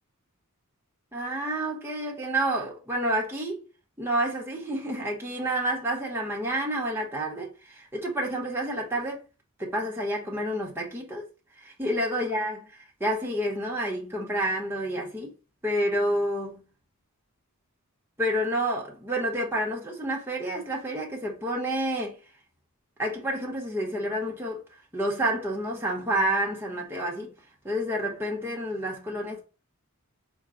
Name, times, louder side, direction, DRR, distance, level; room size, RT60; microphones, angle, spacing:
voice 1, 1.1-3.6 4.0-9.2 9.6-11.2 11.6-12.6 13.0-15.3 15.6-16.6 18.2-22.2 23.0-24.6 24.9-27.3 27.6-29.4, right 1 dB, 10° right, 1.0 m, -29 dB
4.4 x 2.2 x 3.7 m
head